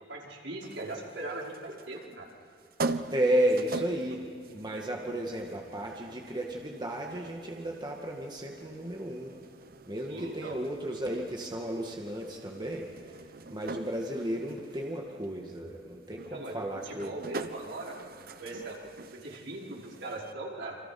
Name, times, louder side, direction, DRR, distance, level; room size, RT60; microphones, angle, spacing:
voice 1, 0.1-2.3 10.1-10.6 16.3-18.8 19.1-20.8, right 2 dB, 75° right, -2 dB, 5.2 m, -40 dB
sound 1, 0.6-20.3, right 3 dB, 55° right, 1.0 m, -43 dB
voice 2, 3.1-4.2 4.5-9.3 9.9-12.9 13.5-17.1, right 1 dB, 25° right, 0 dB, 2.1 m, -33 dB
29.0 x 26.0 x 6.1 m, 2.4 s
head